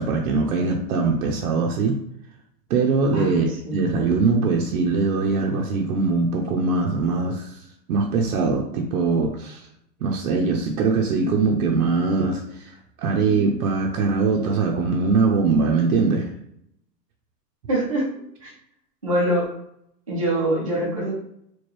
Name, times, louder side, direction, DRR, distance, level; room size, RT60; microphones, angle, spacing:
voice 1, 0.0-1.9 2.7-7.6 7.9-9.7 10.0-16.3, right 4 dB, 60° right, 0 dB, 0.6 m, -22 dB
voice 2, 3.1-3.8 17.7-18.1 18.4-18.5 19.0-19.5 20.1-21.2, right 1 dB, 25° right, -6 dB, 0.3 m, -24 dB
4.4 x 2.3 x 3.1 m, 0.72 s
supercardioid pair, 170°, 50 cm